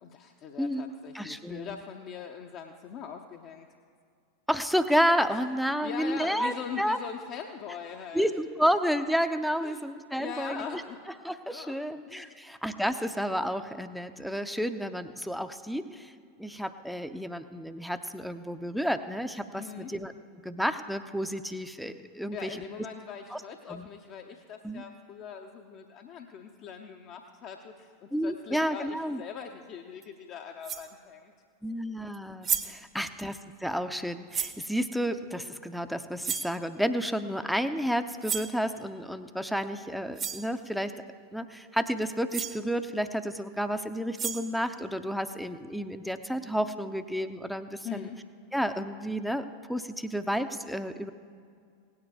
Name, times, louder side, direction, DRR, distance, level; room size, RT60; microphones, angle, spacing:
voice 1, 0.0-3.7 5.3-5.4 5.8-8.3 9.6-9.8 10.2-11.0 11.5-11.8 12.1-12.4 19.5-19.9 22.3-31.3 32.6-32.8 47.8-48.2, left 7 dB, 40° left, 3 dB, 0.7 m, -41 dB
voice 2, 0.6-1.8 4.5-7.0 8.1-10.8 11.2-16.1 16.4-20.1 20.4-22.5 23.3-23.4 23.7-23.9 24.6-24.8 28.1-29.2 31.6-40.9 41.3-48.1 48.5-51.1, equal, ahead, 10 dB, 0.6 m, -31 dB
sound 1, 30.0-30.1 30.6-30.9 32.1-32.2 32.4-32.8 34.3-34.6 36.2-36.6 38.2-38.6 39.8-39.9 40.2-40.5 42.0-42.1 42.3-42.6 43.9-44.6, right 7 dB, 25° right, 0.8 m, -33 dB
17.5 x 9.5 x 4.8 m, 2.3 s
figure-of-eight pair, 85°, 0 cm